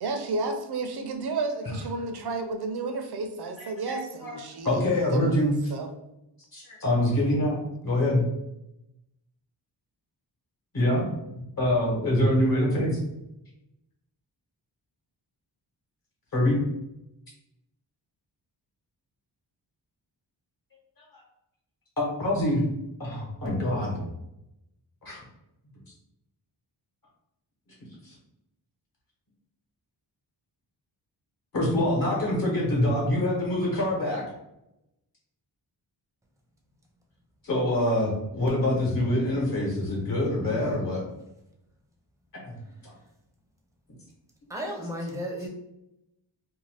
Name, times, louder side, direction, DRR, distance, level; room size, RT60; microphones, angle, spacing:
voice 1, 0.0-5.4 5.7-5.9, right 3 dB, 60° right, 6 dB, 0.5 m, -32 dB
voice 2, 4.6-5.5 6.5-8.2 10.7-11.1 11.6-13.0 16.3-16.6 22.0-22.6 23.0-24.0 25.0-25.2 28.0-28.1 31.5-34.3 37.4-41.0 42.4-42.6 42.8-42.9, left 1 dB, 50° left, -4 dB, 1.1 m, -25 dB
voice 3, 44.5-45.5, equal, 5° right, 1 dB, 0.5 m, -33 dB
2.6 x 2.2 x 3.2 m, 0.86 s
wide cardioid pair, 125°, 45 cm